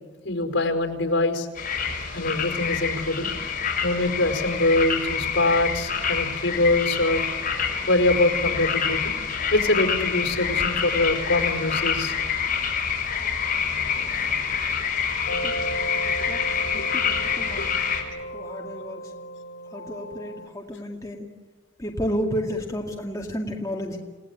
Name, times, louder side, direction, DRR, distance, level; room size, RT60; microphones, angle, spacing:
voice 1, 0.2-1.5 2.1-3.3 3.8-7.2 7.9-9.2 9.5-12.1 14.0-14.1 16.7-16.9 17.6-17.7, left 2 dB, 70° left, 6 dB, 4.8 m, -24 dB
sound 1, 1.6-18.0, left 6 dB, 45° left, 5.8 m, -27 dB
sound 2, 15.3-20.5, right 1 dB, 90° left, 3.1 m, -35 dB
voice 2, 17.2-17.7 18.3-19.0 19.7-21.3 21.8-24.0, equal, 15° left, 0 dB, 2.3 m, -31 dB
29.5 x 18.0 x 9.5 m, 1.4 s
head